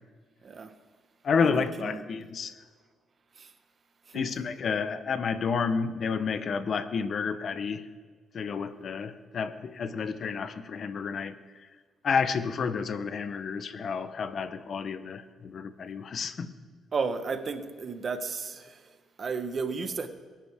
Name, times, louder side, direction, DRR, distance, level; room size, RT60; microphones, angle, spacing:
voice 1, 0.4-0.7 1.4-2.0 3.4-3.5 4.1-4.3 16.9-18.8 19.2-20.1, right 4 dB, 45° right, 8 dB, 1.3 m, -33 dB
voice 2, 1.2-2.5 4.1-7.8 8.3-11.4 12.0-16.5, left 5 dB, 55° left, 11 dB, 1.1 m, -30 dB
23.0 x 10.5 x 3.7 m, 1.5 s
cardioid pair, 90°, 0 cm